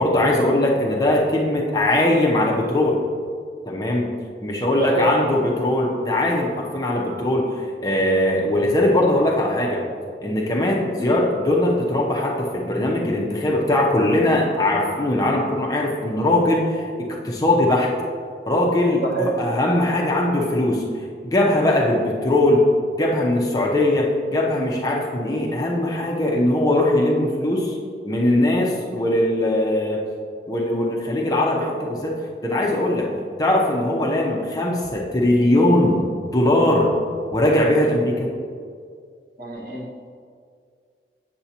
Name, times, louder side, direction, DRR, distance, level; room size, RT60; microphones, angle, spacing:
voice 1, 0.0-3.0 3.7-4.1 4.4-9.8 10.2-17.9 18.5-20.8 21.2-22.7 23.0-27.8 28.0-30.0 30.5-33.1 33.4-36.1 36.3-36.9 37.3-38.3, left 1 dB, 20° left, -2 dB, 0.7 m, -20 dB
voice 2, 4.8-5.1 11.0-11.1 19.0-19.3 39.4-40.1, right 2 dB, 50° right, -2 dB, 1.3 m, -25 dB
8.1 x 7.3 x 2.9 m, 2.1 s
head